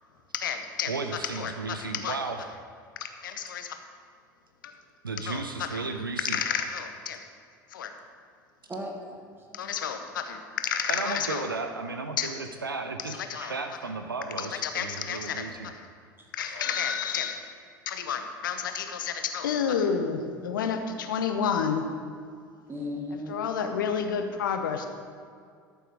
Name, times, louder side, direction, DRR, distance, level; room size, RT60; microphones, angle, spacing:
voice 1, 0.3-0.9 1.3-2.2 3.0-3.8 5.3-5.4 5.7-5.8 6.2-7.2 7.7-7.9 9.5-11.5 12.2-12.3 13.1-13.5 14.4-15.5 15.7-15.9 16.3-17.4 17.9-21.9 23.3-24.9, left 7 dB, 70° left, 7 dB, 0.9 m, -30 dB
voice 2, 0.9-2.5 5.0-6.4 10.9-13.1 13.5-15.7, right 3 dB, 85° right, 6 dB, 0.5 m, -34 dB
voice 3, 8.7-9.7 13.3-13.5 16.2-16.3 16.6-16.7 20.2-20.3 22.7-23.4 23.6-23.7, left 1 dB, 20° right, 0 dB, 1.6 m, -38 dB
13.0 x 7.0 x 4.7 m, 2.2 s
figure-of-eight pair, 70°, 11 cm